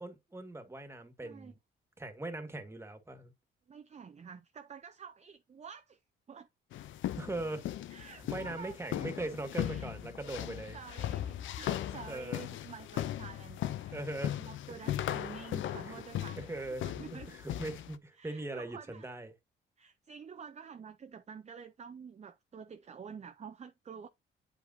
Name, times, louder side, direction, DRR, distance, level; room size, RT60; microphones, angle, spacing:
voice 1, 0.0-1.6 2.0-3.3 7.2-7.7 8.0-10.8 12.1-12.4 13.9-14.4 15.2-15.3 16.4-19.3, right 2 dB, 15° right, 1.7 m, -40 dB
voice 2, 1.2-1.5 3.7-6.0 6.3-6.5 7.9-8.7 9.6-9.9 10.7-14.0 14.4-16.5 16.8-17.3 18.2-19.1 19.8-24.1, right 6 dB, 35° right, 0.7 m, -49 dB
sound 1, 6.7-18.0, left 12 dB, 75° left, 0.7 m, -38 dB
8.7 x 5.1 x 2.7 m
cardioid pair, 90°, 20 cm